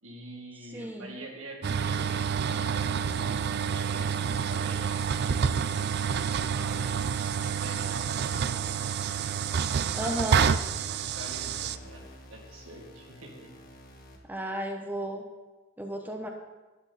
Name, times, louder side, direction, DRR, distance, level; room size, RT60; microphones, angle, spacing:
voice 1, 0.0-5.6 6.1-7.1 7.6-9.3 9.9-10.4 11.1-13.6, right 1 dB, 85° right, 1 dB, 2.0 m, -45 dB
voice 2, 0.7-1.1 9.9-10.4 14.3-15.2 15.8-16.3, right 1 dB, 10° right, 2 dB, 0.9 m, -33 dB
sound 1, 1.6-11.8, right 7 dB, 55° right, 0.4 m, -28 dB
sound 2, 3.1-14.2, equal, 50° left, 1.5 m, -49 dB
12.0 x 9.5 x 4.1 m, 1.2 s
head